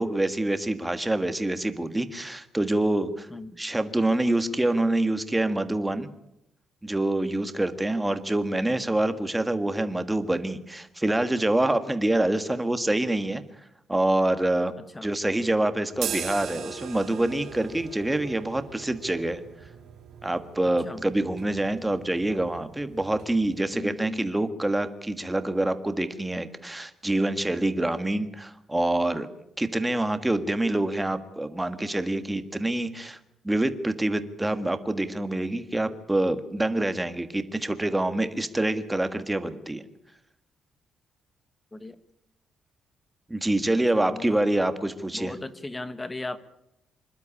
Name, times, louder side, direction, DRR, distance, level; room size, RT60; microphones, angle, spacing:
voice 1, 0.0-3.3 3.6-6.1 6.8-13.4 13.9-14.7 15.0-19.4 20.2-29.3 29.6-33.2 33.4-39.8 43.3-45.3, right 1 dB, 10° right, 9 dB, 1.5 m, -26 dB
voice 2, 3.3-3.6 14.9-15.1 20.8-21.0 23.7-24.3 41.7-42.0 43.9-44.4 45.1-46.4, left 2 dB, 15° left, 12 dB, 1.4 m, -37 dB
sound 1, 15.9-23.7, right 7 dB, 55° right, 3.7 m, -40 dB
26.5 x 12.0 x 9.9 m, 0.84 s
cardioid pair, 140°, 0 cm